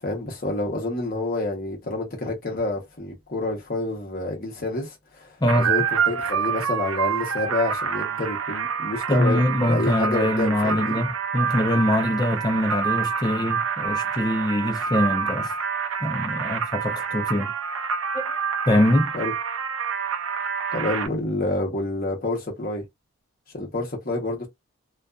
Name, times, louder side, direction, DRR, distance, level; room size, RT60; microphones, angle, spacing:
voice 1, 0.0-11.0 19.1-19.3 20.7-22.8 23.5-24.5, left 2 dB, 45° left, 0.9 m, -28 dB
voice 2, 5.4-5.7 9.1-15.5 16.0-17.5 18.1-18.3 18.7-19.1, left 1 dB, 20° left, 0.5 m, -23 dB
sound 1, 5.5-21.1, right 6 dB, 75° right, 0.5 m, -27 dB
2.5 x 2.3 x 2.3 m
head